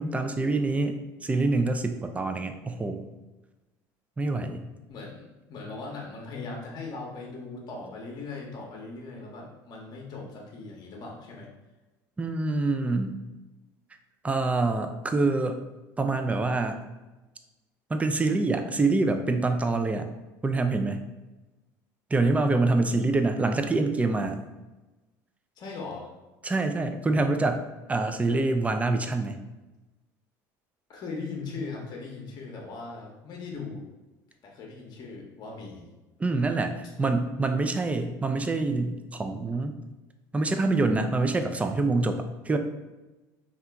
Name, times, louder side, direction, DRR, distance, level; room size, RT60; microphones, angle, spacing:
voice 1, 0.0-3.0 4.2-4.7 12.2-13.1 14.2-15.6 16.0-16.8 17.9-20.1 20.4-21.0 22.1-24.4 26.4-27.6 27.9-29.4 36.2-39.8 40.3-42.6, right 3 dB, 15° right, 7 dB, 0.3 m, -26 dB
voice 2, 4.9-11.5 22.9-23.0 25.6-26.1 30.9-33.8 34.4-35.9, left 3 dB, 45° left, -1 dB, 0.8 m, -39 dB
2.8 x 2.4 x 3.4 m, 1.1 s
supercardioid pair, 85°, 10 cm